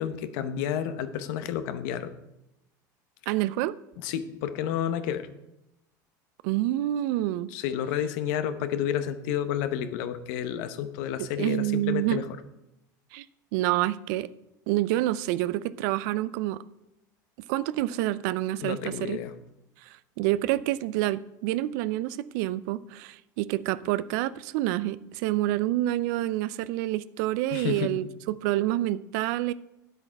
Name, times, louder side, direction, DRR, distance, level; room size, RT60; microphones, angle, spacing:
voice 1, 0.0-2.1 4.0-5.3 7.5-12.3 18.6-19.3 27.5-27.9, left 9 dB, 70° left, 11 dB, 0.9 m, -30 dB
voice 2, 3.3-3.8 6.4-7.5 11.2-12.2 13.1-13.3 13.5-14.3 14.7-16.6 17.5-19.2 19.8-29.5, right 15 dB, 70° right, 17 dB, 0.5 m, -28 dB
9.8 x 8.0 x 4.6 m, 0.89 s
hypercardioid pair, 95°, 10 cm